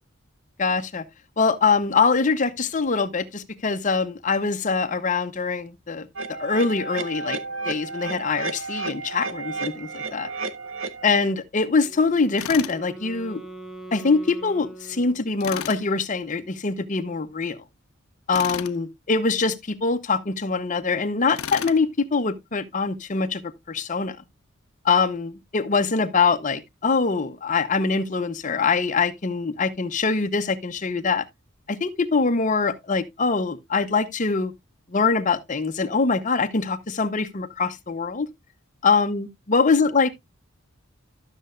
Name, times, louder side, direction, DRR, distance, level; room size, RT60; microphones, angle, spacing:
voice 1, 0.6-1.0 1.4-6.1 6.4-7.4 7.7-10.3 11.0-13.4 13.9-17.6 18.3-23.4 23.7-24.2 24.8-31.2 31.7-34.5 34.9-38.3 38.8-40.1, left 4 dB, 40° left, 0.7 m, -23 dB
sound 1, 6.2-11.2, right 3 dB, 70° right, 0.9 m, -32 dB
Wind instrument woodwind instrument, 11.8-15.7, right 2 dB, ahead, 1.0 m, -42 dB
Tools, 12.4-12.8 15.4-15.8 18.3-18.8 21.4-21.8, left 9 dB, 85° left, 0.5 m, -33 dB
12.5 x 6.6 x 2.4 m
head